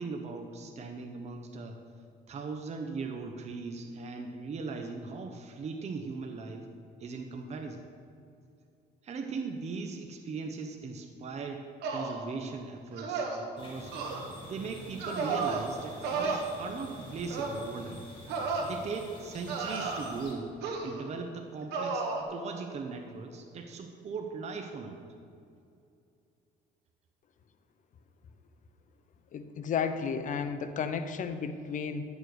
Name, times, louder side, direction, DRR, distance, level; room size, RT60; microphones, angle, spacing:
voice 1, 0.0-1.8 2.3-6.7 7.0-7.8 9.0-14.1 14.4-18.0 18.6-20.6 20.8-25.0, right 4 dB, 40° right, 4 dB, 0.9 m, -39 dB
sound 1, 11.8-12.2 13.0-13.4 13.9-14.2 15.0-15.7 16.0-16.4 17.3-17.6 18.3-18.7 19.5-20.2 20.6-21.0 21.7-22.2, right 4 dB, 80° right, 1.6 m, -33 dB
sound 2, 13.6-20.3, equal, 30° left, 3.0 m, -48 dB
voice 2, 29.3-32.0, left 6 dB, 50° left, 9 dB, 0.8 m, -33 dB
11.0 x 7.1 x 6.4 m, 2.5 s
cardioid pair, 110°, 17 cm